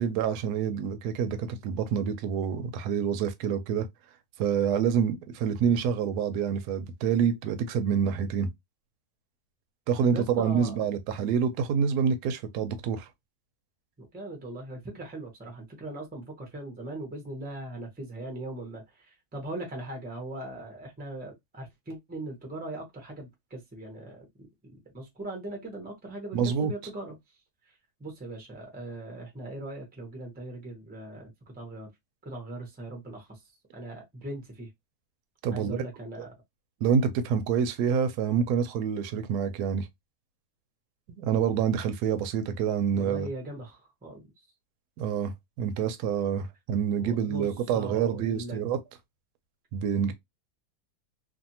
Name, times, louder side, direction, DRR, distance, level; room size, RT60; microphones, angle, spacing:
voice 1, 0.0-3.9 4.4-8.5 9.9-13.1 26.3-26.7 35.4-35.8 36.8-39.9 41.1-43.3 45.0-48.8 49.7-50.1, right 7 dB, 80° right, 1.1 m, -27 dB
voice 2, 10.0-10.8 14.0-24.5 24.9-27.1 27.7-27.8 28.0-31.9 32.2-34.7 35.5-36.3 42.9-44.3 47.0-48.6, right 1 dB, 10° right, 0.5 m, -40 dB
2.6 x 2.5 x 2.7 m
omnidirectional pair, 1.7 m